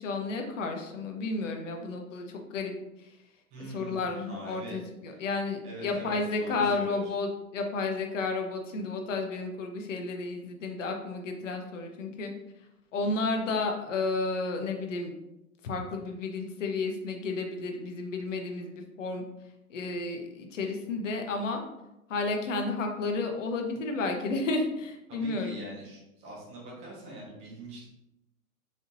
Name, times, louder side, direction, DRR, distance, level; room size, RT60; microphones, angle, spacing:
voice 1, 0.0-2.7 3.0-3.1 3.7-12.3 12.9-15.1 15.6-19.2 19.7-21.6 22.1-25.6, left 3 dB, 55° left, 3 dB, 0.9 m, -32 dB
voice 2, 3.5-4.8 5.1-5.2 5.6-7.1 25.1-27.9, right 1 dB, 15° right, -4 dB, 0.9 m, -43 dB
4.1 x 3.6 x 2.7 m, 0.90 s
hypercardioid pair, 150°, 44 cm